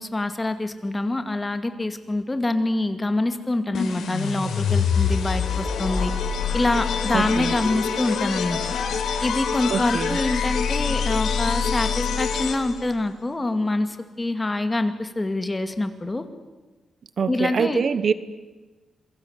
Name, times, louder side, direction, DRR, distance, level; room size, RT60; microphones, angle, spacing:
voice 1, 0.0-6.1 6.5-8.6 9.2-16.3 17.3-17.8, left 2 dB, 20° left, 9 dB, 2.3 m, -25 dB
sound 1, 3.7-12.9, left 6 dB, 90° left, 4.3 m, -25 dB
voice 2, 7.1-7.5 9.7-10.2 17.2-18.1, right 6 dB, 50° right, 14 dB, 1.2 m, -24 dB
27.5 x 23.0 x 8.2 m, 1.2 s
cardioid pair, 120°, 0 cm